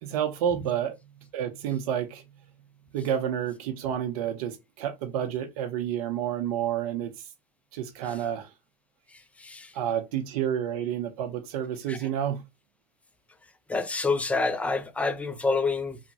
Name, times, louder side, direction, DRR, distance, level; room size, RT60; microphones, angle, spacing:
voice 1, 0.0-1.0 1.3-2.2 2.9-7.1 7.7-8.5 9.7-12.4, right 9 dB, 65° right, 0.7 m, -29 dB
voice 2, 9.1-9.8 11.9-12.1 13.7-16.0, left 3 dB, 5° left, 0.4 m, -28 dB
3.1 x 2.1 x 2.7 m
hypercardioid pair, 105°, 20 cm